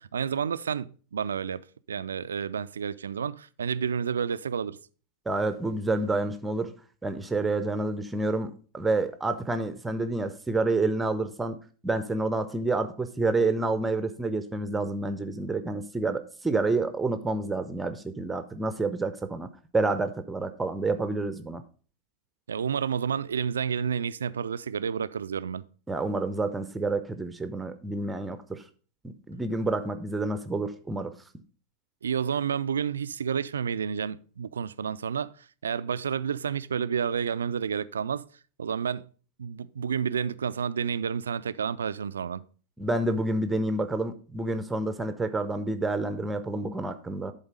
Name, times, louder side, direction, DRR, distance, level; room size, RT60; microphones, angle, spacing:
voice 1, 0.0-1.6 1.9-4.8 22.5-25.6 32.0-35.3 35.6-38.3 38.6-39.1 39.4-42.4, right 7 dB, 70° right, 0.3 m, -30 dB
voice 2, 5.3-6.7 7.0-11.6 11.8-21.6 25.9-28.6 29.0-31.1 42.8-47.3, right 2 dB, 10° right, 0.7 m, -29 dB
11.5 x 3.9 x 5.0 m
figure-of-eight pair, 90°, 0 cm